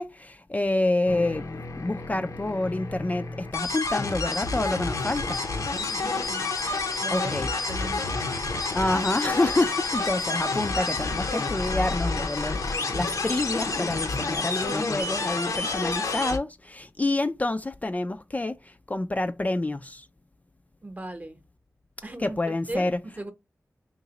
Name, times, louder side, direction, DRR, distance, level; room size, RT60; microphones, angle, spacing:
voice 1, 0.0-1.5 1.8-5.4 7.1-7.5 8.7-20.1 22.2-23.0, left 2 dB, 25° left, 0.3 m, -28 dB
sound 1, 1.1-16.4, left 3 dB, 75° left, 0.7 m, -29 dB
voice 2, 5.8-6.5 7.0-7.3 7.7-8.1 20.8-21.4 22.0-22.9 23.2-23.3, right 1 dB, 30° right, 0.8 m, -37 dB
3.8 x 2.9 x 2.8 m
wide cardioid pair, 75°, 6 cm